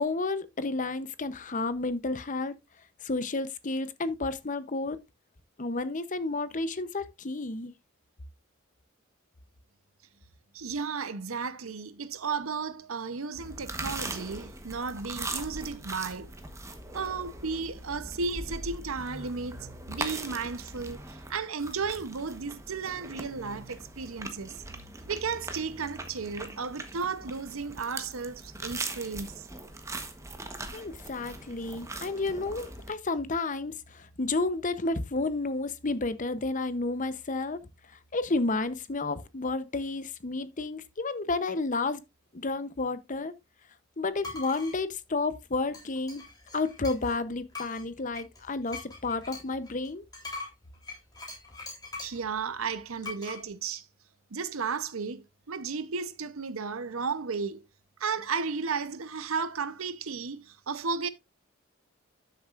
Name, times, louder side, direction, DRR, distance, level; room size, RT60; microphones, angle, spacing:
voice 1, 0.0-2.5 3.0-5.0 5.6-7.7 30.7-37.6 38.1-42.0 42.3-43.3 44.0-46.2 46.5-50.0, left 3 dB, 35° left, 0.8 m, -31 dB
voice 2, 10.5-16.3 16.9-19.6 19.9-24.6 25.1-29.4 52.0-53.8 54.3-57.7 58.0-61.1, right 5 dB, 75° right, 0.8 m, -34 dB
sound 1, 13.3-32.9, right 2 dB, 15° right, 1.1 m, -41 dB
sound 2, 44.2-44.8 45.7-47.2 47.5-52.3 53.0-53.4, left 3 dB, 20° left, 3.4 m, -42 dB
12.0 x 6.8 x 2.5 m
head